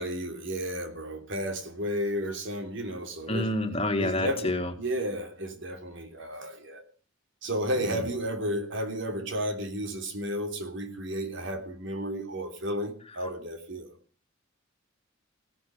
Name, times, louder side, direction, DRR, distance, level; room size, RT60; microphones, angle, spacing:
voice 1, 0.0-3.5 4.0-4.5 4.8-6.8 7.4-13.9, equal, 60° right, 3.3 m, -32 dB
voice 2, 3.3-4.7 7.9-8.0, left 1 dB, 30° left, 2.1 m, -28 dB
16.5 x 13.5 x 5.2 m
head